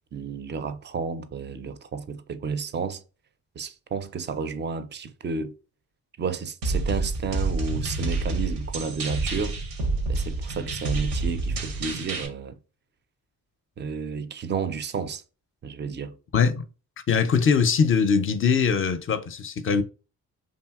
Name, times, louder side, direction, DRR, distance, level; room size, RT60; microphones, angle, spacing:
voice 1, 0.1-3.0 3.6-5.5 6.2-9.6 10.1-12.6 13.8-15.2 15.6-16.1, right 5 dB, 30° right, 0.4 m, -31 dB
sound 1, 6.6-12.3, right 3 dB, 85° right, 0.7 m, -28 dB
voice 2, 16.3-16.6 17.1-19.8, left 6 dB, 35° left, 0.4 m, -22 dB
2.7 x 2.7 x 2.3 m
hypercardioid pair, 40°, 40 cm